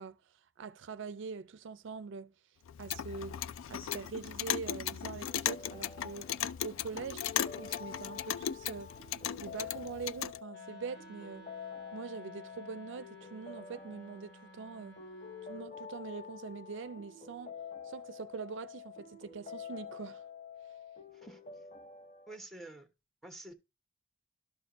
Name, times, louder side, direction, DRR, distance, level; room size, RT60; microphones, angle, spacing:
voice 1, 0.0-2.3 2.8-3.4 3.7-6.3 6.6-9.0 9.4-11.5 11.9-15.0 15.5-17.6 17.8-20.2, right 5 dB, 65° right, 0.4 m, -43 dB
Clock, 2.7-10.4, left 10 dB, 85° left, 0.3 m, -37 dB
sound 1, 5.0-22.4, left 6 dB, 40° left, 0.7 m, -48 dB
Wind instrument woodwind instrument, 10.5-15.7, left 1 dB, 60° left, 1.8 m, -55 dB
voice 2, 22.3-22.9 23.2-23.5, right 2 dB, ahead, 1.1 m, -48 dB
12.0 x 6.4 x 2.6 m
head